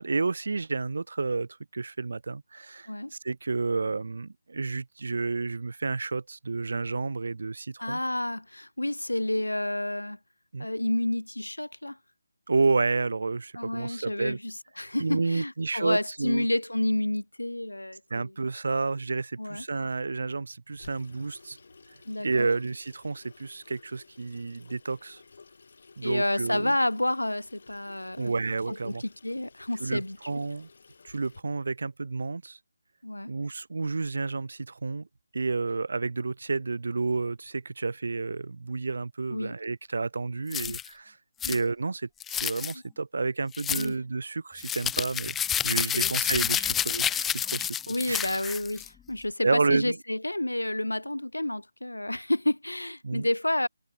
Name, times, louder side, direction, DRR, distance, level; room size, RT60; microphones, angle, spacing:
voice 1, 0.0-8.0 10.5-10.7 12.5-14.4 15.0-16.4 18.1-21.6 22.2-25.2 26.0-26.7 28.2-29.0 29.8-30.7 31.0-32.6 33.3-35.1 35.3-41.2 41.5-48.2 49.4-50.0 53.0-53.3, right 3 dB, 60° right, 1.0 m, -30 dB
voice 2, 7.8-10.2 10.6-12.0 13.5-18.3 19.4-19.6 22.0-22.5 26.0-28.3 28.7-30.3 33.0-33.3 39.3-39.5 40.7-40.8 41.4-41.6 43.7-44.0 45.7-46.1 47.9-53.7, left 1 dB, 85° left, 3.3 m, -30 dB
Water tap faucet / Sink (filling or washing), 20.8-31.4, left 4 dB, 50° left, 7.8 m, -55 dB
sound 1, 40.5-40.9 41.4-41.6 42.2-42.7 43.5-43.9 44.6-48.9, left 9 dB, 5° left, 0.8 m, -29 dB
figure-of-eight pair, 155°, 0 cm